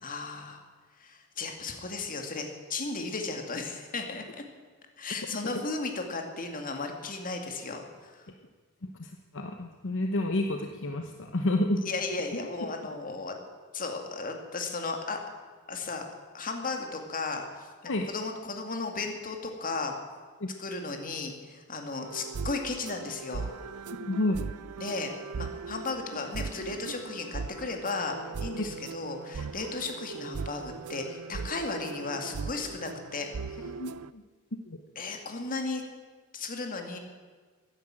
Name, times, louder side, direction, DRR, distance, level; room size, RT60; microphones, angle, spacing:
voice 1, 0.0-0.6 1.0-4.2 5.0-8.3 11.9-13.4 13.7-15.2 15.7-16.0 16.3-19.9 20.6-23.5 24.8-25.1 25.4-33.3 35.0-35.9 36.3-37.0, left 3 dB, 40° left, 4 dB, 2.2 m, -35 dB
voice 2, 8.8-11.8 17.9-18.1 20.4-20.5 24.0-24.4 33.7-34.2 34.7-34.8, left 1 dB, 60° left, 4 dB, 1.0 m, -30 dB
sound 1, 22.0-34.1, right 5 dB, 90° right, 0.5 m, -39 dB
15.0 x 10.5 x 8.9 m, 1.5 s
head